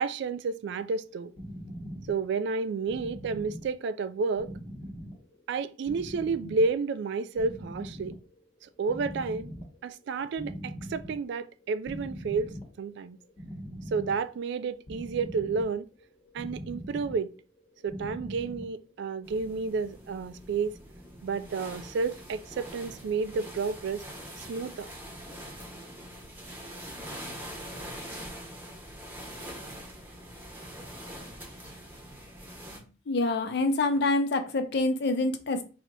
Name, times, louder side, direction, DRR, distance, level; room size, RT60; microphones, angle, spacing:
voice 1, 0.0-1.3 2.1-4.5 5.5-8.2 8.6-9.5 9.8-13.2 13.9-15.9 16.3-17.3 17.8-20.8 21.2-24.0 24.4-24.9, right 4 dB, 60° right, 0.3 m, -31 dB
sound 1, 0.8-19.3, equal, 35° left, 1.0 m, -43 dB
sound 2, 19.2-32.8, equal, 10° right, 0.8 m, -44 dB
voice 2, 33.1-35.6, left 2 dB, 60° left, 0.6 m, -26 dB
3.3 x 2.8 x 3.9 m
head